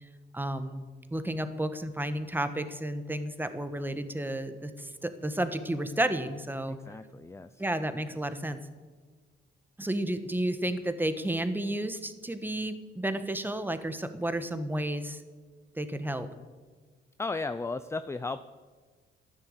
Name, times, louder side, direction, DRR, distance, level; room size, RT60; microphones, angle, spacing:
voice 1, 0.3-0.8 1.1-6.8 7.6-8.6 9.8-15.2 15.7-16.3, right 1 dB, 10° right, 10 dB, 1.4 m, -32 dB
voice 2, 6.7-7.6 17.2-18.4, left 3 dB, 15° left, 12 dB, 0.5 m, -35 dB
13.5 x 10.5 x 8.1 m, 1.4 s
cardioid pair, 90°, 20 cm